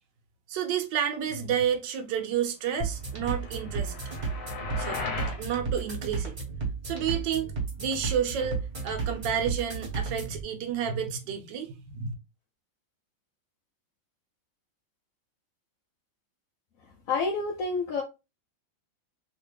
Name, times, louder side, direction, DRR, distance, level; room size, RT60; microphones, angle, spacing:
voice 1, 0.5-3.9 4.8-5.0 5.4-6.3 6.8-12.1, right 8 dB, 75° right, 1.3 m, -30 dB
sound 1, 2.8-10.4, right 4 dB, 30° right, 1.0 m, -33 dB
sound 2, 3.2-5.4, left 4 dB, 60° left, 1.2 m, -37 dB
voice 2, 17.1-18.0, left 4 dB, 90° left, 0.7 m, -28 dB
3.0 x 2.8 x 3.1 m
omnidirectional pair, 2.1 m